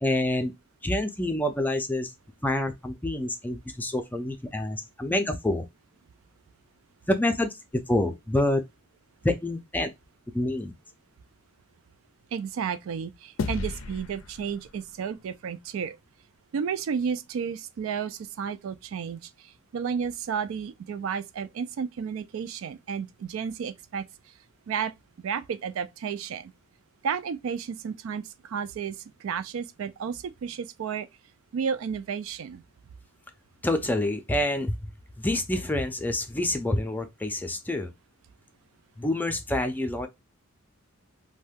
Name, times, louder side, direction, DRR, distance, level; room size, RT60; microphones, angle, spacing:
voice 1, 0.0-0.5 0.8-2.1 2.4-5.6 7.1-7.5 7.9-8.6 9.2-9.9 10.3-10.7 33.6-34.8 35.2-37.9 39.0-40.1, left 1 dB, 10° left, 0.4 m, -27 dB
voice 2, 12.3-16.0 16.5-19.3 19.7-24.0 24.7-24.9 25.2-26.5 27.0-31.1 31.5-32.6, right 6 dB, 70° right, 0.3 m, -32 dB
sound 1, 13.4-16.0, left 3 dB, 70° left, 0.4 m, -36 dB
2.6 x 2.2 x 3.4 m
head